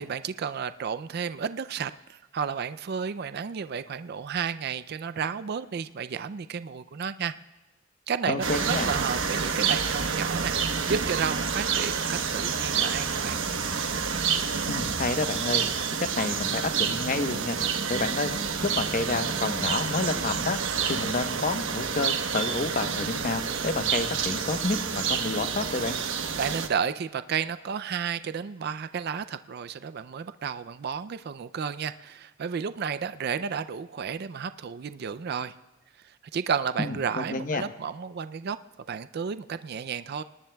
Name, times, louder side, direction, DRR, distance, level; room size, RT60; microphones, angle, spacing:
voice 1, 0.0-7.3 8.1-10.6 10.9-13.4 26.4-35.5 36.0-38.6 38.9-40.2, right 6 dB, 55° right, 13 dB, 0.4 m, -32 dB
voice 2, 8.3-8.9 14.7-15.6 15.9-17.6 17.9-18.3 18.6-20.6 20.9-26.0 36.8-37.6, left 3 dB, 45° left, 8 dB, 0.9 m, -29 dB
sound 1, 8.4-26.7, right 6 dB, 80° right, 1.1 m, -28 dB
26.5 x 19.5 x 2.3 m, 1.2 s
head